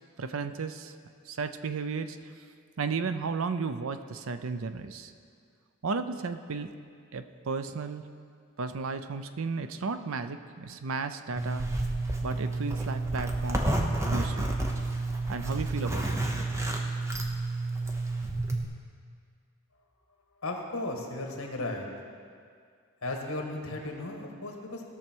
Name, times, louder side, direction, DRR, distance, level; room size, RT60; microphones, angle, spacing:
voice 1, 0.2-0.9 1.3-2.4 2.8-5.1 5.8-6.7 7.1-8.0 8.6-11.7 12.2-13.7 14.0-14.5 15.3-16.2, right 4 dB, 70° right, 10 dB, 0.5 m, -34 dB
Zipper (clothing), 11.4-18.6, right 2 dB, 15° right, 0.8 m, -30 dB
voice 2, 20.4-21.9 23.0-24.9, left 2 dB, 70° left, 1 dB, 1.6 m, -35 dB
17.5 x 6.4 x 4.5 m, 2.2 s
head